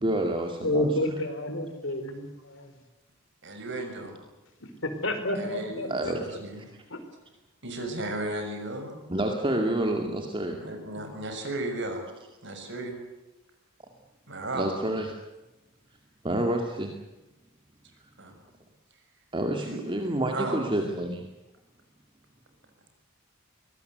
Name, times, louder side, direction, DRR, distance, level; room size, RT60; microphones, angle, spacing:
voice 1, 0.0-0.9 5.9-6.2 6.6-6.7 9.1-10.6 14.5-15.1 16.2-16.9 19.3-21.2, right 1 dB, 25° right, 3 dB, 2.3 m, -28 dB
voice 2, 0.6-2.7 4.6-4.7 5.0-6.1 6.9-7.0, left 1 dB, 65° left, 8 dB, 4.4 m, -30 dB
voice 3, 3.4-4.1 5.3-6.6 7.6-9.0 10.6-12.0 12.4-13.0 14.3-14.8 18.2-18.3 19.7-19.8 20.3-20.9, right 2 dB, 60° right, 5 dB, 6.5 m, -35 dB
23.5 x 20.0 x 8.1 m, 1.0 s
head